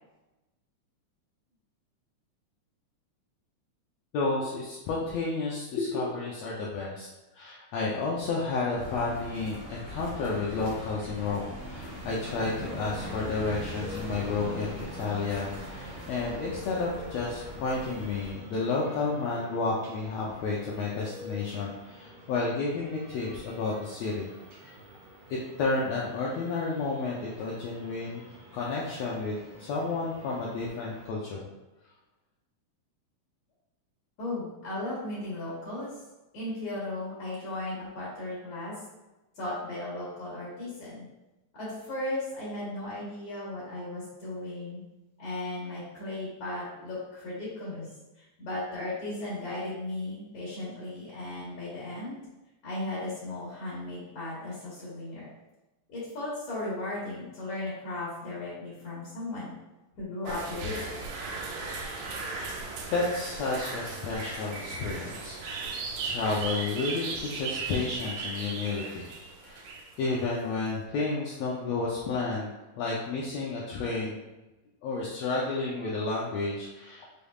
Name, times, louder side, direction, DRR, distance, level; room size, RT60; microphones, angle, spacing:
voice 1, 4.1-7.1 7.3-24.3 24.6-24.7 25.3-28.3 28.5-31.5 62.9-65.7 66.0-69.1 69.4-69.6 70.0-72.5 72.8-74.2 74.8-77.1, left 3 dB, 85° left, -4 dB, 1.5 m, -31 dB
sound 1, 8.8-18.3, equal, 45° right, 1.6 m, -40 dB
sound 2, 11.6-31.1, left 1 dB, 60° right, 1.7 m, -48 dB
voice 2, 34.2-35.9 36.3-38.7 39.4-41.1 41.5-44.8 45.2-47.9 48.4-52.2 52.6-55.3 55.9-59.5 60.0-60.8, left 2 dB, 60° left, -8 dB, 2.3 m, -36 dB
sound 3, 60.3-70.7, right 4 dB, 80° right, 1.9 m, -37 dB
6.5 x 3.4 x 2.4 m, 1.0 s
omnidirectional pair, 3.7 m